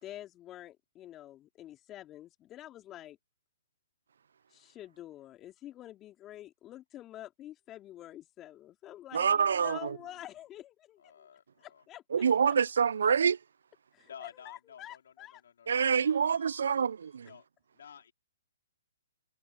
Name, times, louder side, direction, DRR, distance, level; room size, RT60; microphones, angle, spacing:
voice 1, 0.0-3.2 4.5-11.1 11.6-12.6 13.9-15.4 15.7-16.7, left 13 dB, 25° left, 2.6 m, -48 dB
voice 2, 9.1-10.0 12.1-13.4 15.7-17.3, right 7 dB, 70° right, 0.3 m, -26 dB
voice 3, 11.0-11.8 14.0-16.2 17.2-17.5 17.7-18.1, left 8 dB, 65° left, 3.8 m, -52 dB
hypercardioid pair, 130°, 0 cm